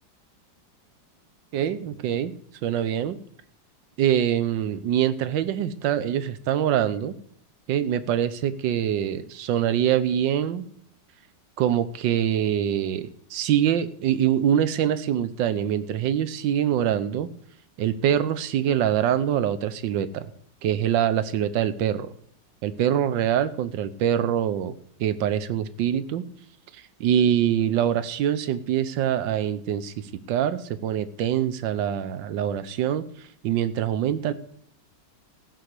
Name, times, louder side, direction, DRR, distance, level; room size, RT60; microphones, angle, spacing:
voice 1, 1.5-2.3 2.6-3.2 4.0-7.1 7.7-10.6 11.6-17.3 17.8-20.3 20.6-22.1 22.6-24.7 25.0-26.3 26.7-29.9 30.3-34.3, right 10 dB, 85° right, 13 dB, 1.5 m, -24 dB
15.5 x 6.6 x 8.1 m, 0.64 s
omnidirectional pair, 2.0 m